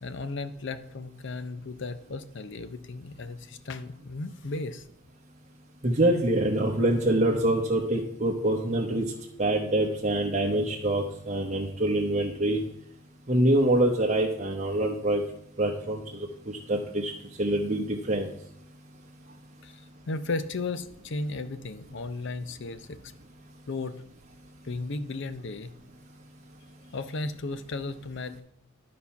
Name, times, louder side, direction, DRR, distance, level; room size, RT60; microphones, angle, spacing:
voice 1, 0.0-4.8 19.6-23.1 23.7-24.0 24.6-25.7 26.9-28.4, left 3 dB, 55° left, 12 dB, 0.6 m, -35 dB
voice 2, 5.8-9.1 9.4-12.6 13.3-15.2 15.6-16.3 16.7-17.1 17.4-18.3, right 1 dB, 35° right, -2 dB, 0.9 m, -25 dB
12.0 x 4.3 x 5.8 m, 0.72 s
head